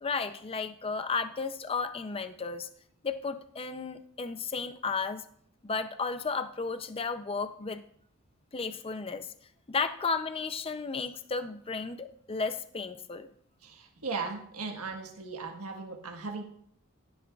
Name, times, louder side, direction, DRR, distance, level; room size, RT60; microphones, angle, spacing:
voice 1, 0.0-2.7 3.0-5.2 5.6-7.8 8.5-9.3 9.7-13.3, left 4 dB, 25° left, 9 dB, 0.5 m, -33 dB
voice 2, 13.6-16.4, right 4 dB, 90° right, 2 dB, 1.5 m, -37 dB
16.0 x 11.0 x 2.4 m, 0.63 s
head